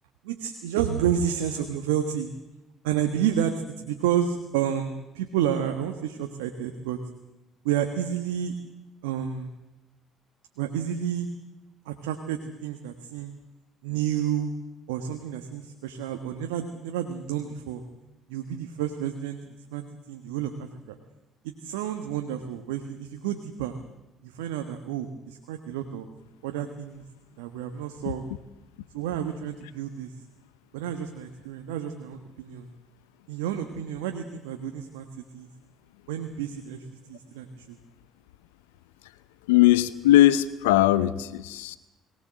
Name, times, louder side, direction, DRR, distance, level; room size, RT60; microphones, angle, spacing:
voice 1, 0.2-2.3 2.8-7.0 7.6-8.5 9.0-9.5 10.6-11.3 11.8-13.3 13.8-14.5 14.9-17.8 18.3-19.4 19.7-21.0 21.4-23.7 24.2-26.1 26.4-27.0 27.4-28.3 28.9-30.1 30.7-32.7 33.3-35.1 35.3-35.5 36.1-37.8, right 9 dB, 85° right, 6 dB, 1.4 m, -30 dB
voice 2, 39.5-41.8, left 14 dB, 85° left, 16 dB, 0.8 m, -19 dB
22.0 x 18.0 x 7.6 m, 1.0 s
hypercardioid pair, 60°, 0 cm